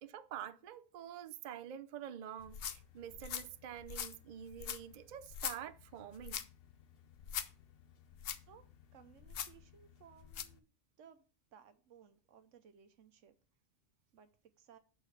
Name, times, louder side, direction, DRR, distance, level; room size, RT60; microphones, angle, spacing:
voice 1, 0.0-6.4, right 10 dB, 55° right, 0.5 m, -47 dB
sound 1, 2.4-10.6, left 8 dB, 60° left, 0.7 m, -45 dB
voice 2, 8.9-10.7 11.0-11.2 11.5-13.3 14.1-14.3 14.6-14.8, right 8 dB, 80° right, 1.1 m, -61 dB
6.6 x 4.3 x 6.3 m
omnidirectional pair, 1.3 m